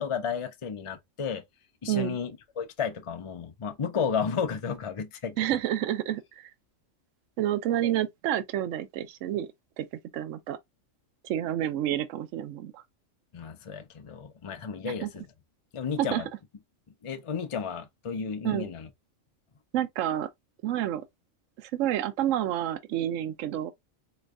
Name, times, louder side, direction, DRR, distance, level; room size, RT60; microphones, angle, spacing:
voice 1, 0.0-1.4 1.8-5.4 13.3-15.2 15.7-16.3 17.0-18.9, left 6 dB, 40° left, 0.4 m, -32 dB
voice 2, 5.4-6.5 7.4-9.5 9.8-9.9 10.1-10.6 11.2-12.8 15.0-15.1 16.0-16.2 18.4-18.7 19.7-20.3 20.6-21.0 21.6-23.7, right 12 dB, 70° right, 0.9 m, -29 dB
4.3 x 3.1 x 2.3 m
omnidirectional pair, 1.4 m